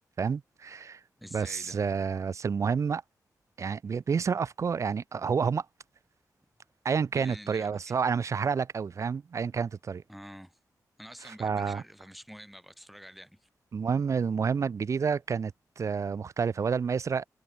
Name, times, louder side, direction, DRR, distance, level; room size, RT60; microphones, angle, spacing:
voice 1, 0.2-1.0 1.3-3.0 3.6-5.7 6.8-10.0 11.2-11.8 13.7-17.3, right 6 dB, 50° right, 0.7 m, -29 dB
voice 2, 1.2-1.8 7.1-7.7 10.1-10.6 11.0-13.5, equal, ahead, 6.0 m, -47 dB
wide cardioid pair, 135°, 7 cm